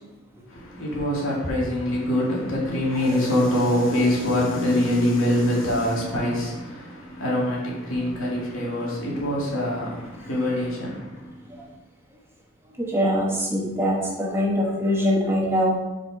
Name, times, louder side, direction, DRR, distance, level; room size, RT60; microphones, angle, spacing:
voice 1, 0.5-11.4, left 1 dB, 85° left, 2.3 m, -24 dB
voice 2, 12.8-15.7, equal, 10° right, 1.1 m, -23 dB
5.7 x 5.0 x 4.8 m
head